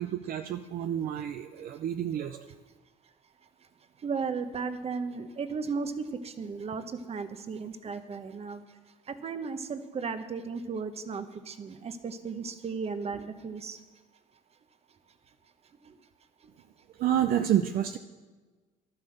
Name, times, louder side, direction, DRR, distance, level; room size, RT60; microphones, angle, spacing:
voice 1, 0.0-2.5 17.0-18.0, right 10 dB, 60° right, 8 dB, 0.6 m, -29 dB
voice 2, 4.0-8.6 9.1-13.8, right 5 dB, 35° right, 10 dB, 1.1 m, -35 dB
12.0 x 9.8 x 6.6 m, 1.3 s
cardioid pair, 110°, 17 cm